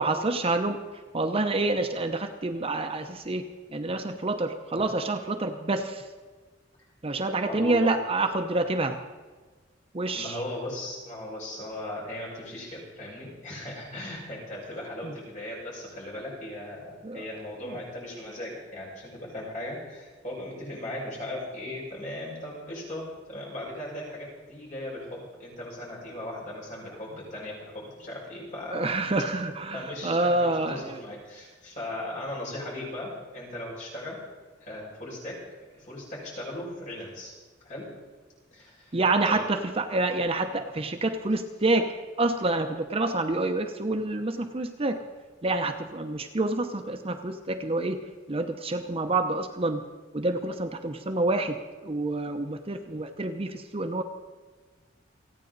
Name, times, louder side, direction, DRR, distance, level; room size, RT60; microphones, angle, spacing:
voice 1, 0.0-6.1 7.0-9.0 9.9-10.4 15.0-15.1 17.0-17.3 17.7-17.8 28.7-31.0 38.9-45.0 45.4-49.9 50.1-54.0, right 2 dB, 30° right, 6 dB, 0.8 m, -28 dB
voice 2, 7.5-7.9 10.1-29.0 29.7-34.2 34.6-35.4 35.7-37.3 37.6-37.9 38.5-39.0 39.3-39.4, left 1 dB, 40° left, -5 dB, 6.0 m, -38 dB
29.0 x 9.7 x 4.0 m, 1.4 s
head